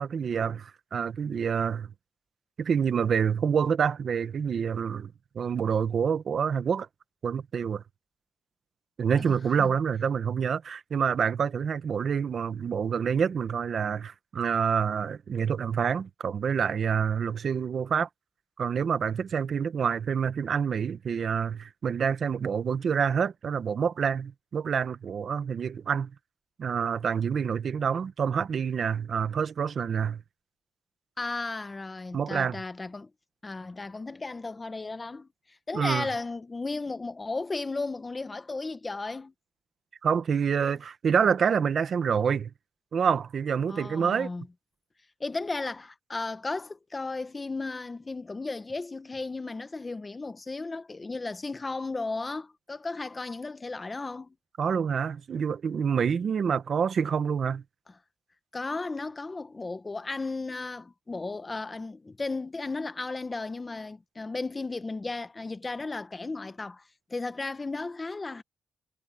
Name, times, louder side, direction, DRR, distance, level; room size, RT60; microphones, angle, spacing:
voice 1, 0.0-1.9 2.6-6.9 7.2-7.8 9.0-18.1 18.6-26.1 26.6-30.2 32.1-32.6 35.7-36.1 40.0-42.5 42.9-44.3 54.6-57.6, right 7 dB, 50° right, 1.1 m, -27 dB
voice 2, 9.2-9.7 31.2-33.1 33.4-35.3 35.7-39.3 43.7-44.5 45.2-54.3 58.5-66.8 67.1-68.4, left 3 dB, 20° left, 1.0 m, -35 dB
cardioid pair, 135°, 0 cm